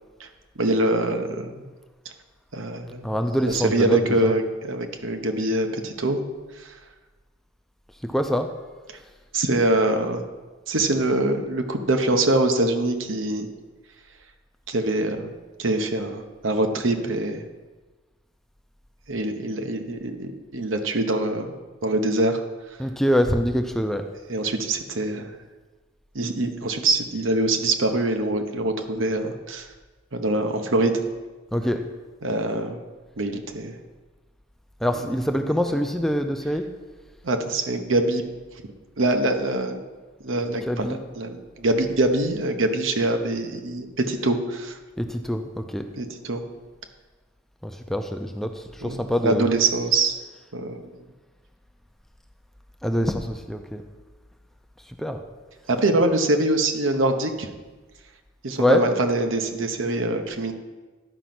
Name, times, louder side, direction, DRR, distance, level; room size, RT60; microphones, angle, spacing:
voice 1, 0.6-1.6 2.5-3.1 3.5-6.2 6.6-6.7 9.3-10.2 10.7-13.5 14.7-15.3 15.6-17.4 19.1-21.5 21.8-22.4 24.3-25.3 26.1-29.7 30.1-31.0 32.2-32.8 33.2-33.8 37.2-38.2 39.0-39.8 40.2-44.7 46.0-46.4 48.8-50.2 50.5-50.9 55.7-57.5 58.4-60.5, right 2 dB, 80° right, 6 dB, 1.0 m, -24 dB
voice 2, 3.0-4.3 8.0-8.5 22.8-24.1 31.5-31.8 34.8-36.7 40.6-41.0 45.0-45.9 47.6-49.5 52.8-53.8 55.0-55.2 58.6-58.9, equal, ahead, 5 dB, 0.4 m, -25 dB
11.5 x 5.2 x 5.9 m, 1.3 s
head